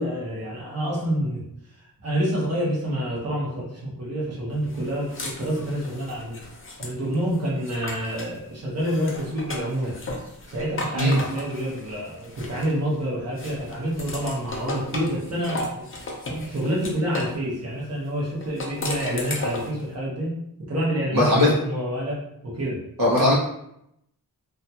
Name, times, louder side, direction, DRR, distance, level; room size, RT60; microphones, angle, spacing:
voice 1, 0.0-1.4 2.0-6.4 6.8-9.9 10.5-15.9 16.5-20.4 20.7-22.8, equal, 45° right, -5 dB, 0.9 m, -27 dB
sound 1, 4.7-8.4 8.8-13.0 13.4-17.4 18.4-19.8, left 2 dB, 35° left, 0.5 m, -35 dB
voice 2, 21.1-21.5 23.0-23.3, left 1 dB, 75° right, -5 dB, 0.9 m, -18 dB
2.5 x 2.3 x 2.7 m, 0.77 s
wide cardioid pair, 130°, 36 cm